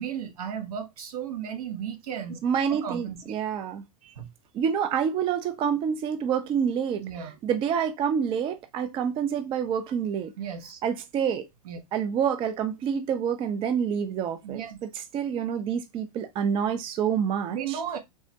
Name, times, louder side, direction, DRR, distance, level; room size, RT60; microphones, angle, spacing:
voice 1, 0.0-2.4 2.7-3.3 4.0-4.3 7.0-7.3 10.4-10.8 11.6-11.8 14.4-14.8 17.5-18.0, right 8 dB, 70° right, 0.8 m, -35 dB
voice 2, 2.4-3.8 4.5-7.0 7.4-10.3 10.8-11.5 11.9-17.8, right 7 dB, 25° right, 0.3 m, -27 dB
3.5 x 2.0 x 2.6 m
hypercardioid pair, 100°, 20 cm